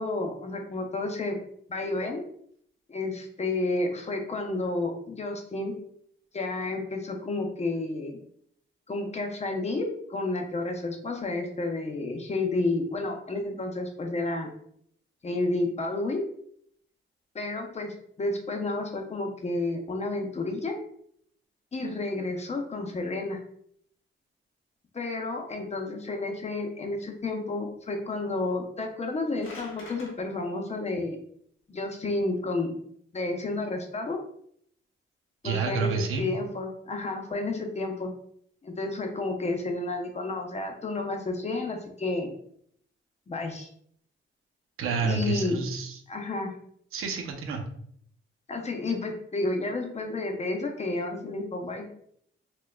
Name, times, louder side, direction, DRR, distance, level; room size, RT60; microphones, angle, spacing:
voice 1, 0.0-1.4 1.7-2.2 2.9-5.7 6.3-8.2 8.9-9.8 10.1-14.5 15.2-16.2 17.3-20.8 21.7-23.4 24.9-31.2 31.7-32.7 33.1-34.2 35.4-35.9 36.2-38.1 38.6-42.3 43.3-43.7 45.0-45.6 46.1-46.5 48.5-51.9, left 2 dB, 30° left, 3 dB, 0.7 m, -31 dB
sound 1, 29.1-30.1, left 2 dB, 75° left, 1.2 m, -45 dB
voice 2, 35.4-36.3 44.8-46.0 46.9-47.6, right 5 dB, 85° right, 2 dB, 0.7 m, -29 dB
4.4 x 2.3 x 2.3 m, 0.66 s
cardioid pair, 110°, 21 cm